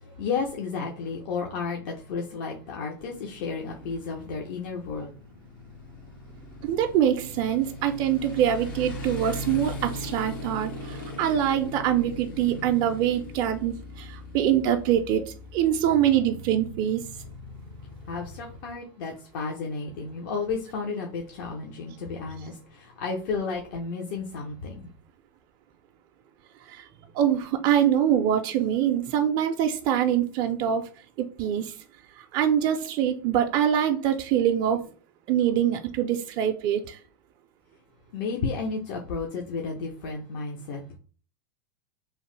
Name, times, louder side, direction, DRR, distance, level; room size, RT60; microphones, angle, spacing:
voice 1, 0.0-5.1 18.0-24.9 38.1-41.0, left 4 dB, 65° left, 0.6 m, -32 dB
Motorcycle, 3.0-18.7, left 2 dB, 85° left, 1.0 m, -40 dB
voice 2, 6.6-17.0 26.6-26.9 27.1-30.9 31.2-31.8 32.2-34.8 35.3-37.0, right 10 dB, 45° right, 0.3 m, -24 dB
2.9 x 2.0 x 3.1 m
hypercardioid pair, 115°, 11 cm